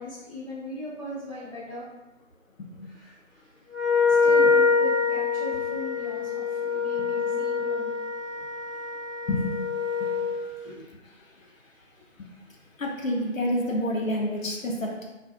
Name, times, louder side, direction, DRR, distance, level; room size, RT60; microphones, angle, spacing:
voice 1, 0.0-1.9 4.1-7.9 10.6-10.7, left 1 dB, 25° left, -12 dB, 0.9 m, -38 dB
Wind instrument woodwind instrument, 3.7-10.4, left 5 dB, 20° right, 1.1 m, -25 dB
voice 2, 12.8-15.0, left 1 dB, 90° left, -1 dB, 0.7 m, -27 dB
2.4 x 2.3 x 2.6 m, 1.0 s
figure-of-eight pair, 165°, 38 cm